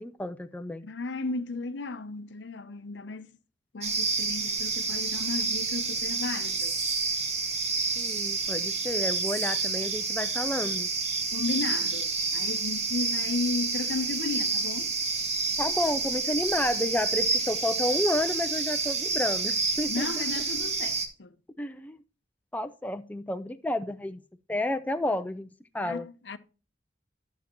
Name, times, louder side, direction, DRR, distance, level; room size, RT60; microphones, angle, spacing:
voice 1, 0.0-0.8 8.0-10.9 15.6-20.4 21.6-22.0 22.5-24.2 24.5-25.5 25.7-26.1, left 1 dB, 10° left, 0.4 m, -31 dB
voice 2, 0.8-3.3 3.7-6.7 11.3-14.9 19.9-21.3 25.8-26.4, left 3 dB, 70° left, 0.7 m, -34 dB
sound 1, 3.8-21.1, right 4 dB, 35° right, 1.3 m, -29 dB
12.0 x 7.1 x 3.0 m
head